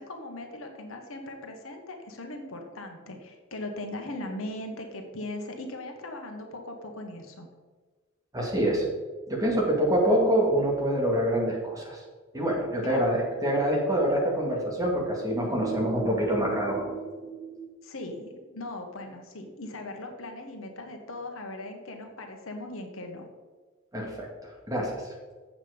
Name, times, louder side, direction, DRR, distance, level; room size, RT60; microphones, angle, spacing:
voice 1, 0.0-7.5 12.8-13.1 17.8-23.3, left 2 dB, 70° left, 4 dB, 1.2 m, -39 dB
voice 2, 8.3-8.8 9.3-12.0 12.3-17.7 23.9-24.9, right 1 dB, 15° right, -2 dB, 1.9 m, -26 dB
7.4 x 7.4 x 5.1 m, 1.4 s
head